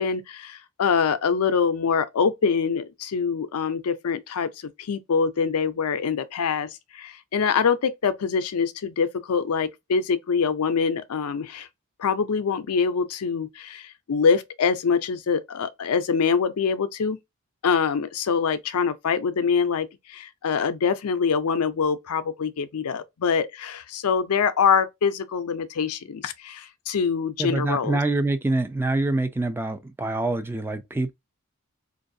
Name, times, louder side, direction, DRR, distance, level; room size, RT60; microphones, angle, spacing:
voice 1, 0.0-4.5 4.8-11.7 12.0-17.2 17.6-28.0, left 6 dB, 90° left, 0.5 m, -24 dB
voice 2, 27.4-31.1, right 2 dB, 10° right, 0.4 m, -25 dB
4.5 x 2.5 x 2.6 m
head